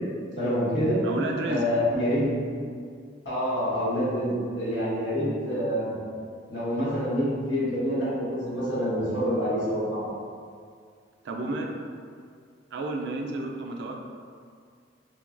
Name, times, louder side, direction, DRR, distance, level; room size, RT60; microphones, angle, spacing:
voice 1, 0.4-1.0 1.5-2.3 3.2-5.9 6.5-10.0, equal, 70° left, -10 dB, 1.2 m, -27 dB
voice 2, 1.0-1.6 11.2-11.7 12.7-14.0, right 2 dB, 65° right, 2 dB, 0.3 m, -31 dB
3.2 x 2.2 x 2.4 m, 2.1 s
head